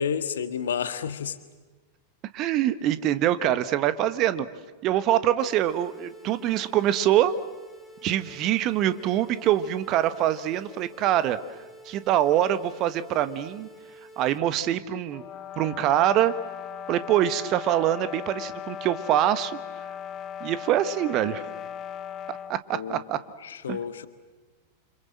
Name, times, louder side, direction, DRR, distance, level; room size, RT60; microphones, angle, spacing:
voice 1, 0.0-1.4 22.7-23.0 23.4-24.1, left 7 dB, 65° left, 11 dB, 1.6 m, -30 dB
voice 2, 2.3-4.5 4.8-7.3 8.0-11.4 11.8-13.7 14.2-15.2 15.6-16.3 16.9-19.6 20.4-21.4 22.3-23.2 23.7-23.8, right 12 dB, 35° right, 13 dB, 1.4 m, -24 dB
sound 1, 5.4-14.4, equal, ahead, 4.5 m, -49 dB
sound 2, 15.1-22.6, left 9 dB, 30° left, 1.0 m, -38 dB
29.0 x 26.5 x 7.6 m, 1.3 s
figure-of-eight pair, 90°, 0 cm